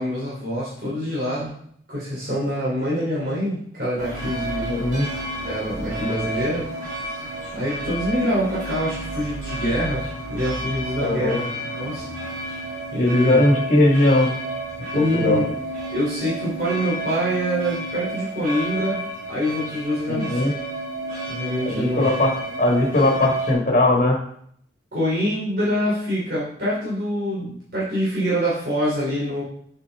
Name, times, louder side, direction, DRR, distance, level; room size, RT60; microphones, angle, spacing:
voice 1, 0.0-1.6 1.9-4.7 5.4-6.7 7.5-11.5 11.8-12.0 12.3-12.4 12.9-13.4 14.9-15.5 15.9-20.6 21.3-22.1 24.9-29.4, equal, 65° right, -8 dB, 3.4 m, -25 dB
sound 1, 4.0-23.5, right 1 dB, 45° right, 3.3 m, -31 dB
voice 2, 4.7-5.1 11.0-11.4 13.0-14.3 15.1-15.4 20.1-20.5 21.6-24.2, left 1 dB, 45° left, 0 dB, 1.7 m, -19 dB
8.3 x 7.0 x 3.6 m, 0.67 s
head